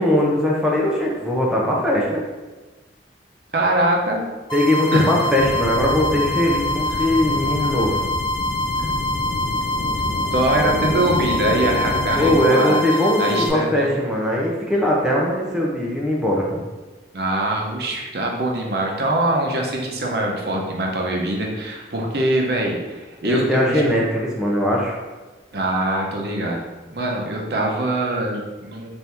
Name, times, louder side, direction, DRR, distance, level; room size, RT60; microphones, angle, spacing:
voice 1, 0.0-2.2 4.5-8.0 12.1-16.6 23.2-25.0, left 1 dB, 5° right, -4 dB, 0.5 m, -20 dB
voice 2, 3.5-4.2 4.9-5.2 6.9-7.0 8.8-8.9 10.3-12.8 13.2-14.0 17.1-23.8 25.5-26.6 26.9-28.9, right 1 dB, 60° right, -1 dB, 0.7 m, -23 dB
sound 1, 4.5-13.5, left 1 dB, 30° left, 0.8 m, -25 dB
sound 2, 5.4-12.4, left 2 dB, 55° left, 0.4 m, -29 dB
4.3 x 2.6 x 3.4 m, 1.2 s
head